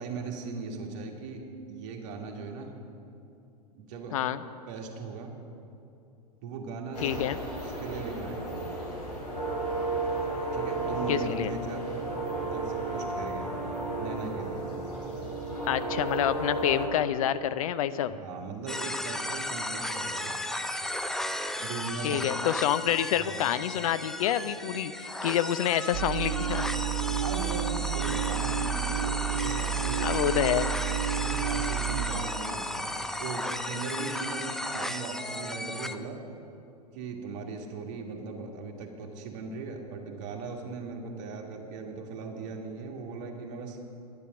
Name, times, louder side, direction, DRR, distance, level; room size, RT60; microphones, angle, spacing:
voice 1, 0.0-2.8 3.7-4.2 4.7-5.4 6.4-7.2 7.5-8.7 10.5-12.0 12.4-13.5 14.0-14.7 18.1-20.4 21.6-22.2 23.2-23.4 27.1-30.2 31.2-36.2 36.9-43.8, right 4 dB, 50° right, 2 dB, 1.8 m, -38 dB
voice 2, 4.1-4.4 7.0-7.4 11.1-11.5 15.7-18.1 22.0-26.7 30.0-30.7, left 11 dB, 55° left, 13 dB, 0.5 m, -28 dB
sound 1, 6.9-16.9, right 2 dB, 85° left, 3.5 m, -33 dB
sound 2, 18.7-36.0, left 1 dB, ahead, 0.4 m, -34 dB
sound 3, 25.9-32.0, right 11 dB, 30° right, 2.5 m, -31 dB
11.0 x 11.0 x 6.1 m, 2.7 s
figure-of-eight pair, 90°, 21 cm